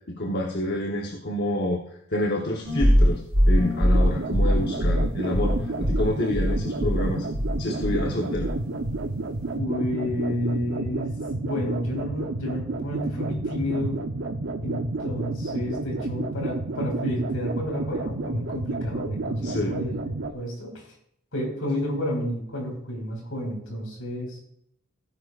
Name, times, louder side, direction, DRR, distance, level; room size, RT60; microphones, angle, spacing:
voice 1, 0.1-3.2 3.5-7.3 7.6-8.5 19.4-19.8, left 1 dB, 50° left, 0 dB, 1.1 m, -28 dB
sound 1, 2.6-8.1 8.3-9.1, equal, 90° right, 5.4 m, -23 dB
sound 2, 3.9-20.3, right 2 dB, 60° right, 0.8 m, -31 dB
voice 2, 9.5-14.0 14.6-20.8 21.3-24.4, equal, 70° left, 0 dB, 5.0 m, -30 dB
16.5 x 9.9 x 2.5 m, 0.69 s
head